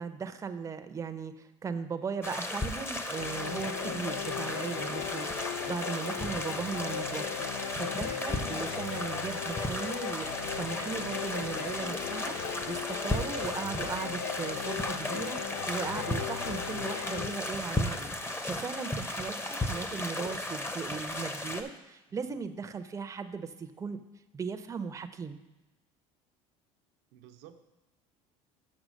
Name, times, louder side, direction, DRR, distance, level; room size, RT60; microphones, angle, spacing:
voice 1, 0.0-24.0 24.3-25.4, right 5 dB, 20° right, 9 dB, 0.6 m, -38 dB
sound 1, 2.2-21.6, left 1 dB, 15° left, 0.8 m, -35 dB
sound 2, 3.1-18.4, left 8 dB, 85° left, 0.5 m, -38 dB
sound 3, 7.4-15.4, left 3 dB, 55° left, 2.1 m, -52 dB
voice 2, 16.6-17.0 19.9-20.0 22.1-22.4 27.1-27.6, right 10 dB, 80° right, 6 dB, 0.7 m, -55 dB
6.4 x 6.2 x 6.2 m, 1.0 s
supercardioid pair, 100°, 15 cm